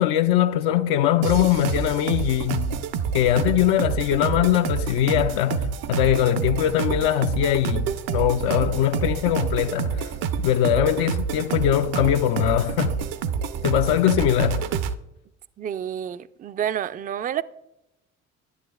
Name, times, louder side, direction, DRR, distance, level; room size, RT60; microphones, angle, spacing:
voice 1, 0.0-2.8 3.1-10.1 10.4-13.0 13.6-14.7, left 11 dB, 70° left, 0.5 m, -22 dB
sound 1, 1.2-14.9, right 7 dB, 70° right, 0.6 m, -28 dB
voice 2, 15.6-17.4, right 10 dB, 25° right, 0.3 m, -29 dB
10.5 x 9.5 x 2.3 m
hypercardioid pair, 55°, 37 cm